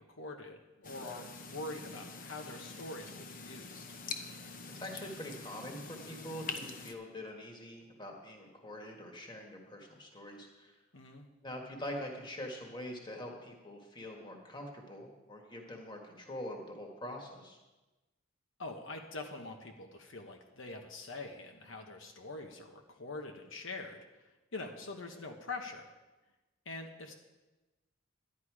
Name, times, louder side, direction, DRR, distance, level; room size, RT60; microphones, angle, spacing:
voice 1, 0.0-3.8 10.9-11.2 18.6-24.0 24.5-25.9 26.6-27.1, left 2 dB, 65° left, 3 dB, 1.1 m, -44 dB
sound 1, 0.8-6.9, left 4 dB, 40° left, 0.8 m, -45 dB
voice 2, 4.7-10.8 11.4-17.6, left 1 dB, 20° left, 1 dB, 1.6 m, -44 dB
11.5 x 10.5 x 4.8 m, 1.1 s
head